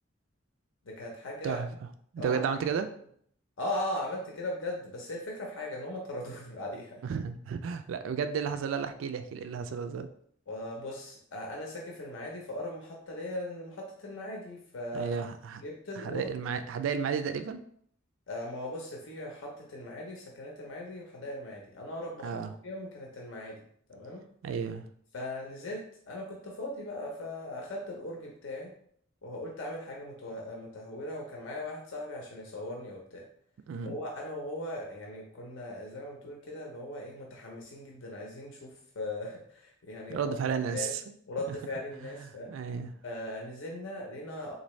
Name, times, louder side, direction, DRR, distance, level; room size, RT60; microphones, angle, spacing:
voice 1, 0.8-1.6 2.2-2.4 2.8-2.9 3.6-7.0 10.5-15.2 15.5-16.3 18.3-22.4 22.6-23.6 23.9-24.2 25.1-28.7 29.2-33.2 33.8-40.3 40.7-40.9 41.3-42.5 43.0-44.5, left 1 dB, 75° left, -1 dB, 0.7 m, -39 dB
voice 2, 2.1-2.9 7.0-10.1 14.9-15.6 16.0-17.6 22.2-22.5 24.4-24.8 33.7-34.0 40.1-41.0 42.5-42.9, right 6 dB, 80° right, 9 dB, 0.3 m, -32 dB
3.8 x 2.6 x 3.1 m, 0.63 s
head